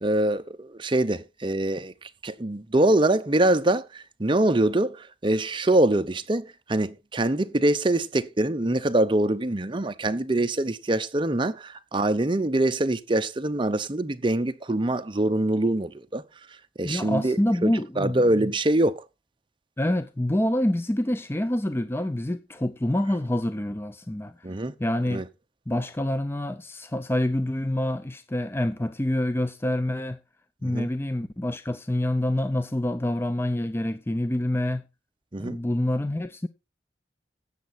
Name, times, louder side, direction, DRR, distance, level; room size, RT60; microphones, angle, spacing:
voice 1, 0.0-1.9 2.2-6.4 6.7-16.2 16.8-19.0 24.4-24.7 25.1-25.2 30.6-30.9 35.3-35.6, right 1 dB, 25° right, 0.8 m, -24 dB
voice 2, 16.8-18.3 19.8-24.4 24.8-25.2 25.7-30.2 30.6-34.8 35.4-36.5, left 1 dB, 15° left, 0.5 m, -27 dB
13.0 x 8.2 x 4.3 m
head